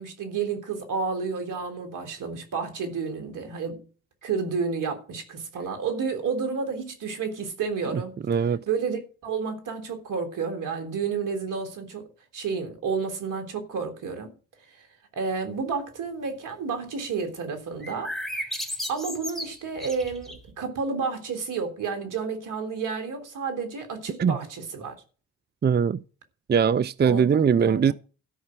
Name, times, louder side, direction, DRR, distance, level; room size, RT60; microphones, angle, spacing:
voice 1, 0.0-3.8 4.2-8.2 8.7-12.1 12.3-14.3 14.7-14.9 15.1-18.1 18.9-24.9 27.0-27.9, right 5 dB, 70° right, 3.4 m, -31 dB
voice 2, 8.3-8.6 24.2-24.4 25.6-26.0 26.5-27.9, right 7 dB, 30° right, 0.5 m, -21 dB
sound 1, 17.8-20.5, equal, ahead, 3.7 m, -34 dB
13.5 x 5.5 x 7.6 m
supercardioid pair, 45°, 33 cm